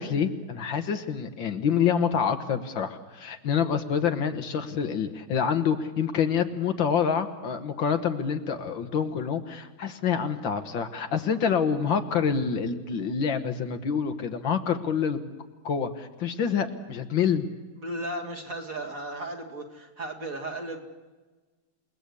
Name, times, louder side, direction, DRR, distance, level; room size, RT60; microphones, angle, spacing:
voice 1, 0.0-15.2 15.6-17.5, left 7 dB, 70° left, 7 dB, 2.0 m, -27 dB
voice 2, 17.8-20.9, right 1 dB, 40° right, 0 dB, 2.8 m, -35 dB
29.0 x 19.0 x 8.4 m, 1.3 s
omnidirectional pair, 2.2 m